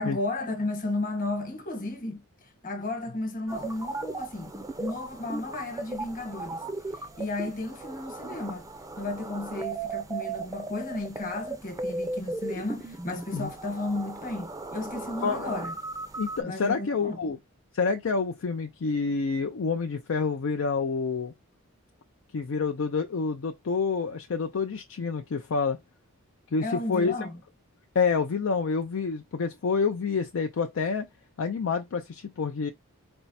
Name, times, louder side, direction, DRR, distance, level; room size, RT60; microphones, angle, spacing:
voice 1, 0.0-2.2 2.6-6.6 7.2-8.6 9.0-15.7 16.4-17.2 26.6-27.4, left 2 dB, 40° left, 1.2 m, -33 dB
sound 1, 3.5-16.4, right 3 dB, 15° right, 0.5 m, -37 dB
voice 2, 16.2-17.4 17.7-21.3 22.3-25.8 26.5-27.1 27.9-31.1 31.4-32.7, left 5 dB, 60° left, 0.4 m, -28 dB
4.4 x 2.1 x 4.1 m
head